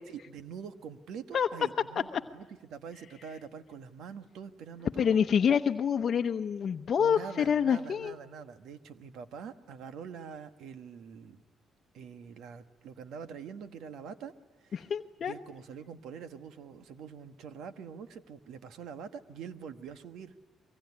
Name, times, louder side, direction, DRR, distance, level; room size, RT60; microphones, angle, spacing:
voice 1, 0.1-2.1 2.3-5.2 7.0-11.4 11.9-14.3 14.6-14.9 15.2-20.3, right 7 dB, 80° right, 9 dB, 1.4 m, -45 dB
voice 2, 5.0-8.1 14.7-15.3, left 7 dB, 55° left, 5 dB, 0.8 m, -27 dB
24.5 x 23.0 x 9.8 m, 1.2 s
cardioid pair, 90°, 0 cm